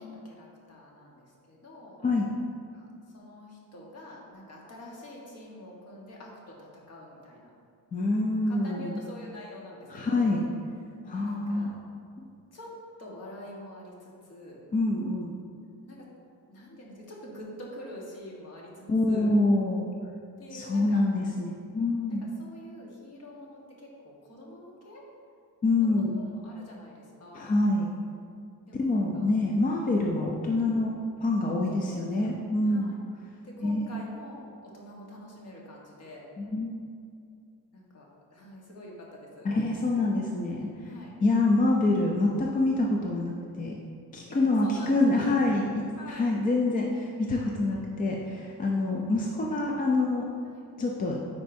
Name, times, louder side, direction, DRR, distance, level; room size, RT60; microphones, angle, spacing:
voice 1, 0.0-2.0 2.7-2.9 3.1-7.5 8.5-10.3 11.2-11.8 12.5-14.6 15.8-16.1 16.5-19.3 20.4-21.0 21.7-25.0 25.8-25.9 26.1-27.5 28.7-29.3 29.7-29.8 31.7-32.4 32.7-33.0 33.4-36.2 37.7-39.5 40.8-41.1 44.3-45.4 45.9-46.3 49.2-49.3 50.4-50.6, left 1 dB, 40° left, -3 dB, 1.3 m, -46 dB
voice 2, 7.9-9.0 9.9-10.4 11.0-11.7 12.2-12.3 14.7-15.3 18.9-19.9 20.5-22.2 25.6-26.2 27.3-27.9 28.8-30.9 31.2-33.0 33.6-33.9 36.4-36.7 39.4-40.7 41.2-43.8 44.1-50.3 50.8-51.2, left 2 dB, 25° left, -1 dB, 0.3 m, -26 dB
9.1 x 4.6 x 2.6 m, 2.4 s
cardioid pair, 170°, 37 cm